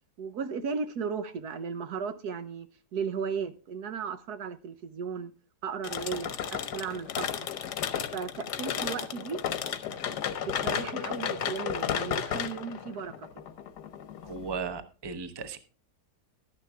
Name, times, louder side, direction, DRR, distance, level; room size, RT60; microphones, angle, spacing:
voice 1, 0.2-2.7 2.9-5.3 5.6-7.5 8.1-9.4 9.9-10.0 10.4-13.3, right 6 dB, 75° right, 1.4 m, -35 dB
sound 1, 5.8-14.5, left 8 dB, 90° left, 1.5 m, -33 dB
voice 2, 14.2-15.6, right 5 dB, 20° right, 0.7 m, -36 dB
12.0 x 10.5 x 3.5 m
omnidirectional pair, 1.7 m